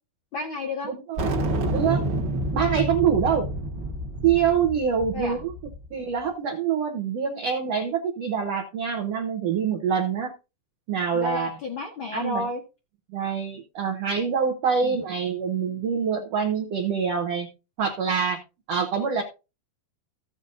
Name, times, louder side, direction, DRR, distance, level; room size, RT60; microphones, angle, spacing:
voice 1, 0.3-0.9 5.1-5.4 11.1-12.6 14.8-15.0, left 2 dB, 80° left, 0 dB, 1.1 m, -31 dB
voice 2, 0.8-1.3 1.7-2.0 2.5-3.5 4.2-5.5 5.9-10.3 10.9-11.5 12.1-12.5 13.1-17.5 17.8-18.4 18.7-19.2, right 7 dB, 80° right, 2 dB, 1.4 m, -25 dB
sound 1, 1.2-5.8, right 1 dB, 50° right, 1.5 m, -28 dB
14.5 x 8.0 x 2.6 m, 0.29 s
omnidirectional pair, 4.4 m